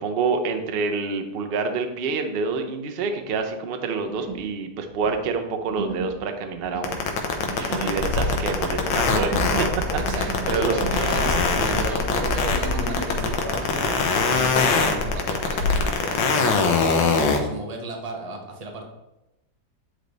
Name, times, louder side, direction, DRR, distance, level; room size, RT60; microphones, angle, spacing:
voice 1, 0.0-7.0 7.7-9.7 10.1-10.8, right 4 dB, 85° right, 5 dB, 0.5 m, -27 dB
sound 1, 2.5-2.7 3.2-3.5 4.1-4.5 4.8-11.4 11.7-13.1 13.4-14.6, right 3 dB, 55° right, 1.3 m, -37 dB
sound 2, 6.8-17.4, left 5 dB, 85° left, 1.6 m, -22 dB
voice 2, 7.6-8.3 10.0-18.9, right 2 dB, 30° right, 1 dB, 0.7 m, -34 dB
Bark, 8.0-16.0, left 1 dB, 55° left, 2.3 m, -30 dB
9.4 x 3.3 x 3.9 m, 0.93 s
omnidirectional pair, 2.0 m